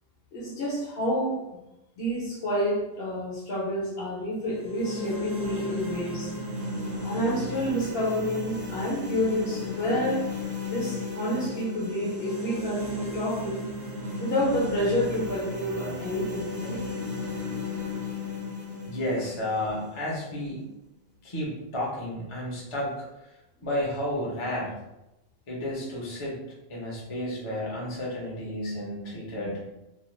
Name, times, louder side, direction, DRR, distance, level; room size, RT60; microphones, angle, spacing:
voice 1, 0.3-1.4 2.0-6.3 7.0-10.3 10.7-13.6 14.2-16.8, equal, 60° left, -4 dB, 1.0 m, -29 dB
sound 1, 4.4-20.5, left 2 dB, 50° right, 0.8 m, -35 dB
voice 2, 18.8-20.6 21.2-22.9 23.6-24.8 25.5-26.4 26.7-29.6, left 1 dB, 30° left, -4 dB, 0.6 m, -32 dB
2.8 x 2.1 x 3.0 m, 0.93 s
omnidirectional pair, 1.3 m